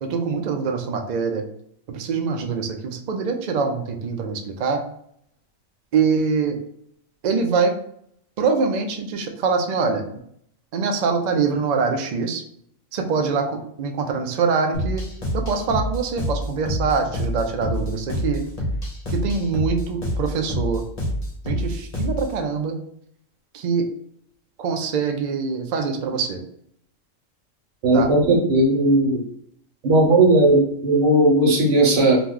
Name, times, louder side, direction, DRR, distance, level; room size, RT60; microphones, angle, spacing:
voice 1, 0.0-1.4 1.9-4.8 5.9-6.6 7.2-7.7 8.4-10.1 10.7-12.4 12.9-15.0 15.3-18.4 19.1-20.8 21.4-22.8 23.5-23.9 24.6-26.4 27.9-28.1, right 5 dB, 90° right, 4 dB, 0.3 m, -24 dB
sound 1, 14.7-22.3, equal, 35° left, 0.7 m, -27 dB
voice 2, 27.8-29.2 29.8-32.2, right 1 dB, 65° right, -1 dB, 1.3 m, -17 dB
2.9 x 2.3 x 3.6 m, 0.69 s
omnidirectional pair, 1.4 m